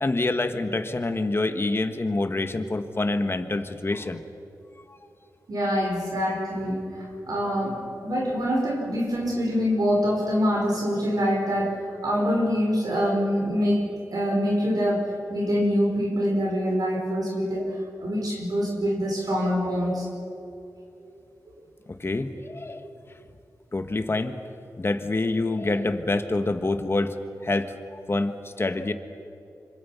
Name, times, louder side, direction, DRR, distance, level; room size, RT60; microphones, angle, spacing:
voice 1, 0.0-4.2 21.9-22.9 23.7-24.4 24.8-27.2 27.4-27.7 28.1-28.9, left 2 dB, 35° left, 8 dB, 1.7 m, -26 dB
voice 2, 5.5-13.8 14.1-17.7 18.0-20.1 21.0-21.1, equal, 70° right, -2 dB, 5.3 m, -25 dB
26.0 x 25.5 x 5.9 m, 2.7 s
cardioid pair, 65°, 7 cm